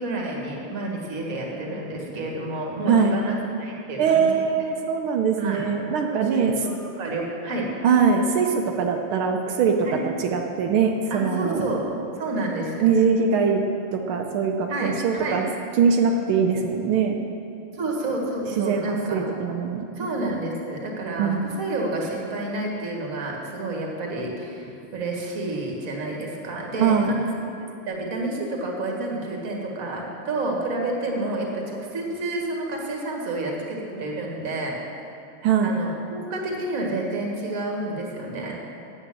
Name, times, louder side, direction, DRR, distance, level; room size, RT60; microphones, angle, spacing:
voice 1, 0.0-4.5 5.4-5.6 6.3-7.7 9.8-10.0 11.1-11.8 12.2-12.9 14.7-15.4 17.7-19.3 20.0-27.3 27.9-34.8 35.6-38.6, right 2 dB, 45° right, -1 dB, 1.9 m, -29 dB
voice 2, 4.0-6.5 7.8-9.8 10.0-11.7 12.8-13.6 13.9-15.5 15.8-17.2 18.6-19.9 21.2-21.5 26.8-27.1 35.4-35.7, right 6 dB, 85° right, 2 dB, 1.6 m, -22 dB
9.1 x 8.1 x 7.5 m, 2.8 s
omnidirectional pair, 2.3 m